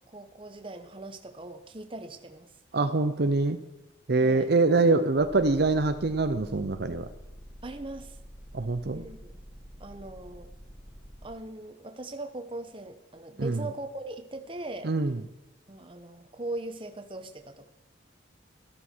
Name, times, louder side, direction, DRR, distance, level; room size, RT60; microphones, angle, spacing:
voice 1, 0.1-2.5 4.2-4.5 7.6-8.2 8.9-9.3 9.8-10.5 11.2-14.9 15.7-17.7, right 2 dB, 25° right, 7 dB, 1.0 m, -40 dB
voice 2, 2.7-3.6 4.1-7.1 8.5-9.0 13.4-13.6 14.8-15.2, right 3 dB, 55° right, 8 dB, 0.6 m, -24 dB
sound 1, 5.1-11.3, equal, 20° left, 2.8 m, -47 dB
13.0 x 12.5 x 4.5 m, 0.98 s
head